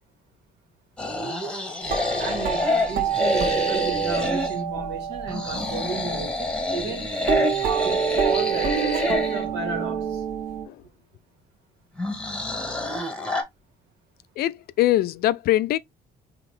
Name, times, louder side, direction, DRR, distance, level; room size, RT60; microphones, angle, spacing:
sound 1, 1.0-4.6 5.3-9.4 12.0-13.4, left 1 dB, 5° left, 1.2 m, -27 dB
sound 2, 1.8-6.8 7.3-10.6, right 8 dB, 60° right, 1.4 m, -28 dB
voice 1, 2.2-7.1 7.6-10.2, right 4 dB, 85° right, 1.9 m, -33 dB
voice 2, 14.4-15.8, left 14 dB, 65° left, 0.4 m, -22 dB
3.8 x 3.0 x 3.2 m
cardioid pair, 110°, 17 cm